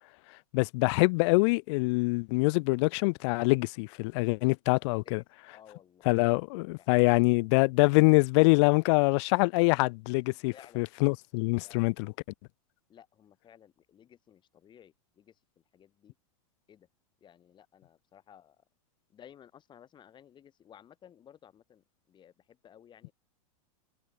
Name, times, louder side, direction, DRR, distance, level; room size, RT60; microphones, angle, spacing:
voice 1, 0.5-5.2 6.1-12.1, left 28 dB, 50° left, 0.7 m, -25 dB
voice 2, 5.5-6.5 6.8-6.9 10.5-10.8 11.6-11.8 12.9-15.4 15.7-16.1 16.7-16.9 17.2-18.6 19.1-23.1, left 9 dB, 25° left, 5.4 m, -56 dB
hypercardioid pair, 130°, 18 cm